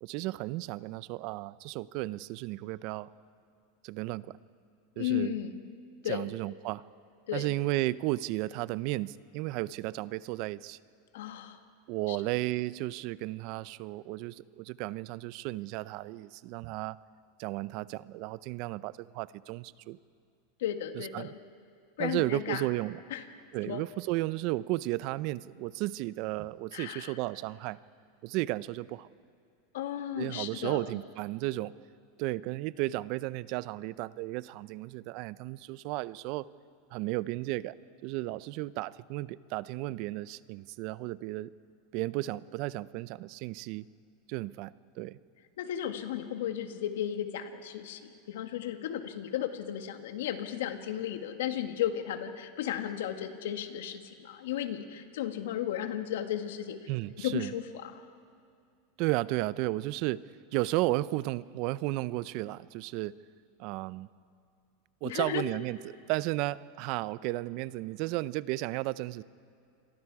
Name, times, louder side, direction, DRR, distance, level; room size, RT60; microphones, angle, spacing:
voice 1, 0.0-3.1 3.8-4.4 5.0-5.4 6.0-6.8 7.3-10.8 11.9-17.0 17.4-20.0 20.9-21.3 22.0-23.0 23.5-27.8 28.2-29.1 30.2-31.7 32.2-36.5 36.9-37.8 38.0-41.5 41.9-43.9 44.3-45.2 56.9-57.5 59.0-60.2 60.5-63.1 63.6-64.1 65.0-69.2, right 18 dB, 55° right, 19 dB, 0.5 m, -34 dB
voice 2, 5.0-5.6 6.0-6.3 7.3-7.5 11.1-11.6 12.1-12.2 20.6-21.4 22.0-22.7 23.1-23.2 23.6-23.8 26.7-27.1 29.7-30.8 45.6-56.8 57.2-57.9 65.0-65.4, left 11 dB, 80° left, 7 dB, 1.7 m, -34 dB
28.5 x 23.0 x 4.8 m, 2.4 s
supercardioid pair, 125°, 0 cm